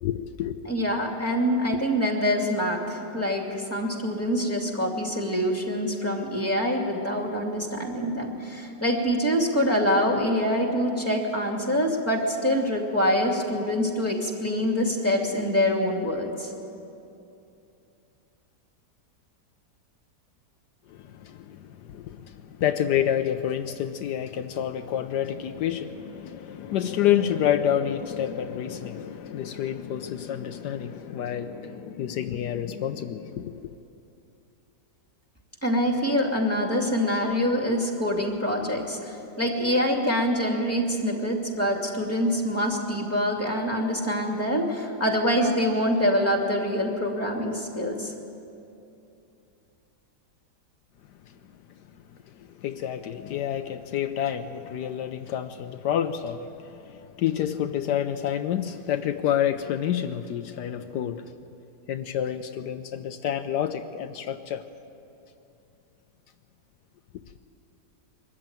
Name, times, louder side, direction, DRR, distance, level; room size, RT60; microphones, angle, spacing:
voice 1, 0.0-0.6 20.9-33.7 52.4-61.3 61.9-64.6, left 10 dB, 80° left, 8 dB, 1.2 m, -28 dB
voice 2, 0.6-16.5 35.6-48.1, equal, 10° left, 1 dB, 2.4 m, -25 dB
22.5 x 13.5 x 8.9 m, 2.7 s
omnidirectional pair, 1.8 m